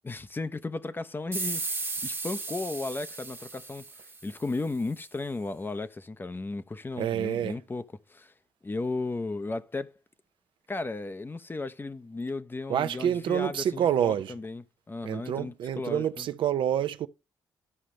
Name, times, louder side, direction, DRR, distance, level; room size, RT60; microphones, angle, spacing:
voice 1, 0.0-3.9 4.2-8.3 8.6-9.9 10.7-16.3, left 3 dB, 25° left, 0.7 m, -35 dB
sound 1, 1.3-4.6, right 3 dB, 25° right, 1.0 m, -35 dB
voice 2, 6.9-7.6 12.7-14.3 15.0-17.1, right 10 dB, 70° right, 0.6 m, -27 dB
13.5 x 5.0 x 3.2 m
supercardioid pair, 60°, 9 cm